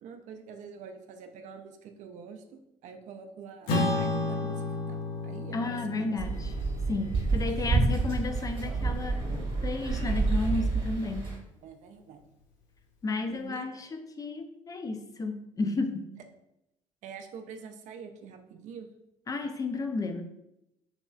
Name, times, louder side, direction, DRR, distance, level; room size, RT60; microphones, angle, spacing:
voice 1, 0.0-6.1 7.5-7.7 11.6-12.2 13.3-13.7 17.0-18.9, right 6 dB, 45° right, 6 dB, 0.4 m, -46 dB
Acoustic guitar / Strum, 3.7-8.4, left 2 dB, 60° left, 0.7 m, -33 dB
voice 2, 5.5-6.5 6.9-9.2 9.6-11.3 13.0-16.1 19.3-20.2, left 3 dB, 20° left, 5 dB, 0.4 m, -32 dB
sound 1, 6.2-11.4, right 3 dB, 30° right, 1.0 m, -29 dB
3.0 x 2.9 x 2.3 m, 0.84 s
figure-of-eight pair, 50°, 17 cm